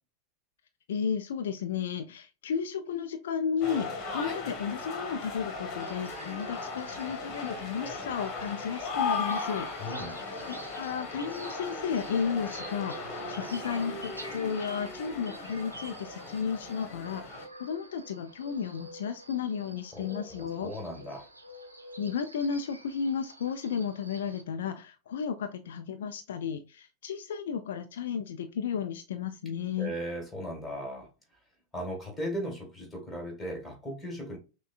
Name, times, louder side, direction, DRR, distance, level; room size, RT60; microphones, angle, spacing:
voice 1, 0.9-9.7 10.5-20.7 22.0-29.9, left 7 dB, 60° left, 0.4 m, -33 dB
sound 1, 3.6-17.5, left 4 dB, 35° left, 1.2 m, -37 dB
sound 2, 5.8-24.4, right 1 dB, 80° right, 0.6 m, -49 dB
voice 2, 9.8-10.2 19.9-21.3 29.8-31.1 31.7-34.4, equal, 5° left, 1.7 m, -37 dB
5.9 x 2.2 x 2.4 m
figure-of-eight pair, 90°, 0 cm